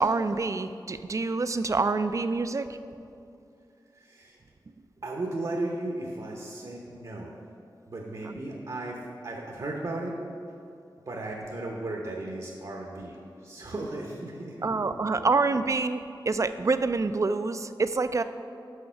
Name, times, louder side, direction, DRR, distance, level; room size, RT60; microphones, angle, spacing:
voice 1, 0.0-2.8 14.6-18.2, right 3 dB, 40° right, 11 dB, 0.4 m, -26 dB
voice 2, 3.9-4.4 5.0-7.4 7.9-10.2 10.5-10.6 11.1-15.3, right 2 dB, 55° right, -1 dB, 0.9 m, -36 dB
6.5 x 5.7 x 5.6 m, 2.6 s
cardioid pair, 55°, 8 cm